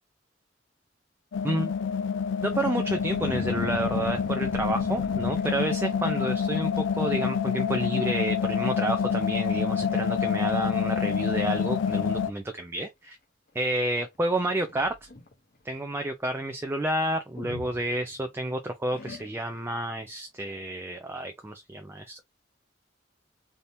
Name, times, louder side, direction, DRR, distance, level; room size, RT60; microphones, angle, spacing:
sound 1, 1.3-12.3, left 6 dB, 75° left, 0.4 m, -27 dB
voice 1, 2.4-13.2 13.6-15.1 15.6-22.2, right 1 dB, 15° right, 0.4 m, -30 dB
sound 2, 2.8-6.1 6.8-7.0 7.3-7.8 8.0-8.1 8.9-9.0 9.5-9.6 10.1-10.6 11.4-11.5 14.3-15.3 17.4-18.4 18.9-19.7, left 2 dB, 55° left, 0.9 m, -40 dB
3.4 x 2.8 x 2.6 m
head